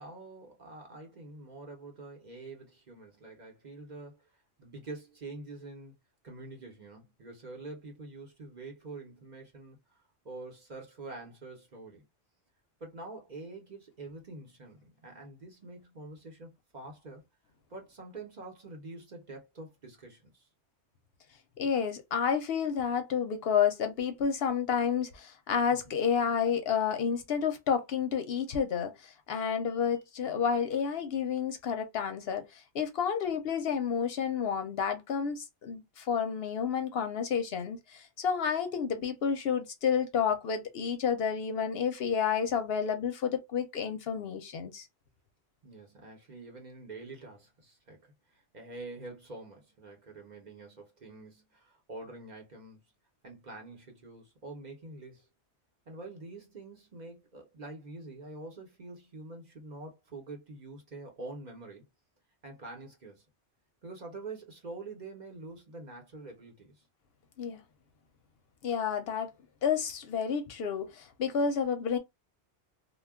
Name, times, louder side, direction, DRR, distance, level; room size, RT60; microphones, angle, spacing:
voice 1, 0.0-4.3 4.6-6.0 6.2-12.0 12.8-17.2 17.7-20.5 25.7-26.0 45.6-52.8 53.2-55.3 55.9-61.9 62.4-63.2 63.8-66.8, right 2 dB, 45° right, 0.9 m, -46 dB
voice 2, 21.6-44.9 67.4-67.6 68.6-69.3 69.6-72.0, left 7 dB, 65° left, 0.7 m, -30 dB
2.2 x 2.2 x 3.4 m
omnidirectional pair, 1.2 m